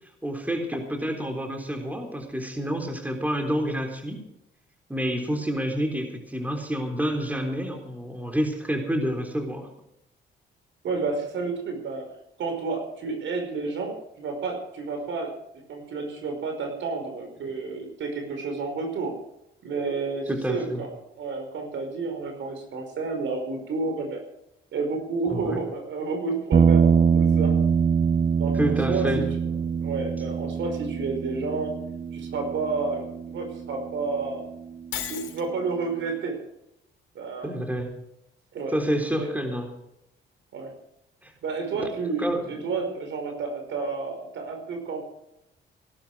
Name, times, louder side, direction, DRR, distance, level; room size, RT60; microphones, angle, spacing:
voice 1, 0.2-4.2 4.9-9.7 20.3-20.8 25.3-25.6 28.5-29.3 37.4-37.9 38.7-39.7 41.2-41.3 41.7-41.8 42.2-42.6, equal, 10° right, 4 dB, 3.7 m, -28 dB
voice 2, 10.8-12.1 12.4-19.1 19.6-20.9 21.2-24.2 24.7-27.5 28.4-29.2 29.8-31.8 32.1-34.4 35.1-36.4 37.1-37.5 38.5-38.7 39.1-39.3 40.5-40.7 41.4-45.0, right 4 dB, 70° right, 5 dB, 5.1 m, -30 dB
sound 1, 26.5-34.9, right 6 dB, 30° right, 0.5 m, -24 dB
Shatter, 34.9-35.5, left 10 dB, 85° left, 2.8 m, -33 dB
17.5 x 12.0 x 5.0 m, 0.82 s
cardioid pair, 90°, 20 cm